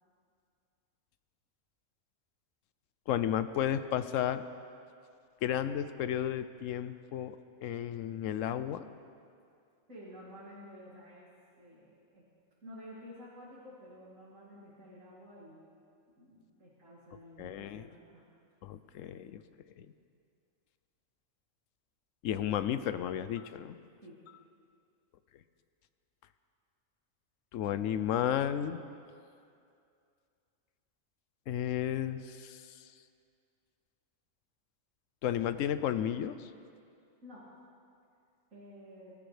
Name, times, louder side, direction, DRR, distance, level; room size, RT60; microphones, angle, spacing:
voice 1, 3.1-4.4 5.4-7.4 7.6-8.8 17.4-17.9 18.6-19.4 19.8-19.9 22.2-23.8 27.5-28.8 31.5-32.6 35.2-36.4, left 10 dB, 75° left, 12 dB, 0.9 m, -33 dB
voice 2, 9.9-11.3 11.6-12.2 12.6-15.6 16.2-18.2 24.0-24.2 37.2-37.4 38.5-39.2, equal, 75° right, -9 dB, 2.9 m, -51 dB
23.0 x 13.5 x 3.3 m, 2.4 s
omnidirectional pair, 1.4 m